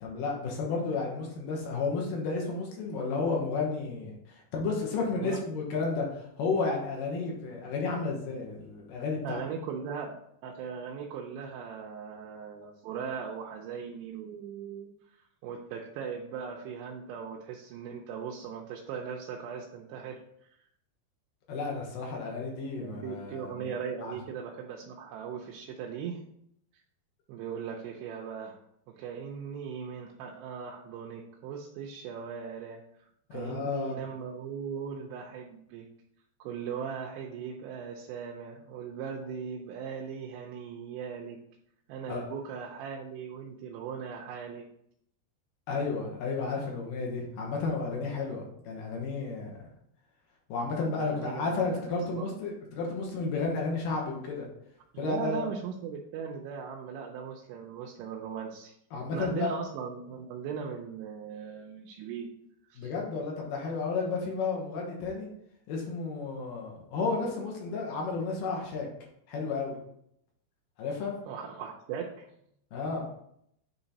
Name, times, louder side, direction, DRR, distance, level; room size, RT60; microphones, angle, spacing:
voice 1, 0.0-9.4 21.5-23.7 24.0-24.1 33.3-34.0 42.1-42.3 45.7-49.5 50.5-54.5 55.0-55.5 58.9-59.5 62.8-65.3 65.7-68.9 69.3-69.8 70.8-71.1 72.7-73.0, left 4 dB, 65° left, -1 dB, 2.5 m, -32 dB
voice 2, 9.2-10.2 10.4-20.6 22.8-26.2 27.3-28.6 29.0-35.9 36.4-41.4 41.9-44.6 51.0-52.3 54.9-58.7 59.1-62.3 62.7-62.9 71.3-72.3, right 7 dB, 85° right, -1 dB, 2.8 m, -39 dB
9.0 x 3.2 x 4.1 m, 0.73 s
omnidirectional pair, 4.7 m